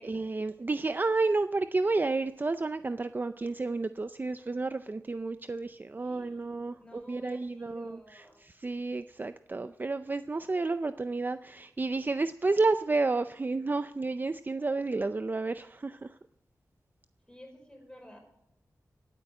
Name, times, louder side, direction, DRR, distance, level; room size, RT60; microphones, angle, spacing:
voice 1, 0.0-16.2, right 3 dB, 30° right, 11 dB, 0.5 m, -31 dB
voice 2, 6.0-8.4 17.3-18.2, left 1 dB, 10° left, 1 dB, 5.4 m, -52 dB
18.0 x 9.1 x 7.4 m, 0.81 s
wide cardioid pair, 100°, 7 cm